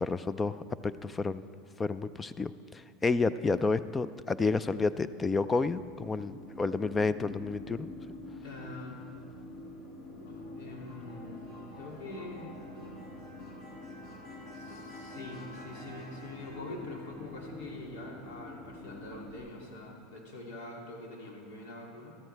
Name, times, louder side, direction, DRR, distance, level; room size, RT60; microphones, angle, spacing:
voice 1, 0.0-1.4 1.8-7.9, left 4 dB, 15° left, 15 dB, 0.3 m, -30 dB
sound 1, 5.7-19.4, left 1 dB, 45° left, 2.2 m, -46 dB
voice 2, 8.4-9.0 10.3-11.4 11.8-12.5 14.5-22.2, left 2 dB, 75° left, -1 dB, 2.4 m, -44 dB
13.5 x 13.0 x 3.3 m, 2.1 s
supercardioid pair, 125°, 0 cm